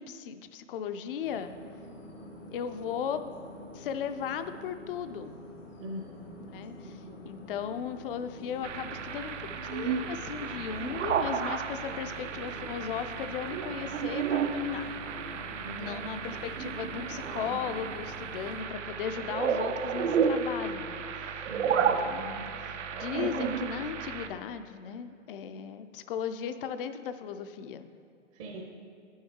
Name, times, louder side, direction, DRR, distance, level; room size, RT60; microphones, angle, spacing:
voice 1, 0.0-1.5 2.5-3.2 3.7-5.4 6.4-9.4 9.7-14.9 15.8-21.5 21.8-27.9, left 8 dB, 50° left, 10 dB, 0.5 m, -37 dB
sound 1, 1.2-18.6, left 1 dB, 85° left, 1.5 m, -47 dB
voice 2, 6.8-7.3 15.6-16.2 21.5-22.5 28.3-28.6, right 1 dB, 30° right, 0 dB, 0.6 m, -43 dB
sound 2, 8.6-24.3, right 6 dB, 80° right, 0.7 m, -32 dB
9.9 x 6.3 x 3.6 m, 2.4 s
hypercardioid pair, 140°, 36 cm